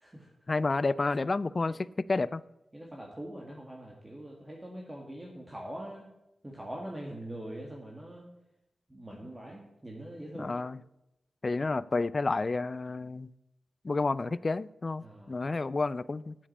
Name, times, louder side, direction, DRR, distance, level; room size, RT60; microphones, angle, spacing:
voice 1, 0.5-1.8 2.1-2.4 10.4-10.8 11.4-13.3 13.8-16.3, left 3 dB, 35° left, 19 dB, 0.4 m, -30 dB
voice 2, 2.7-6.1 6.4-8.2 8.9-10.6 15.0-15.4, right 1 dB, 20° right, -1 dB, 1.8 m, -43 dB
8.6 x 7.2 x 8.4 m, 0.90 s
wide cardioid pair, 95°, 0 cm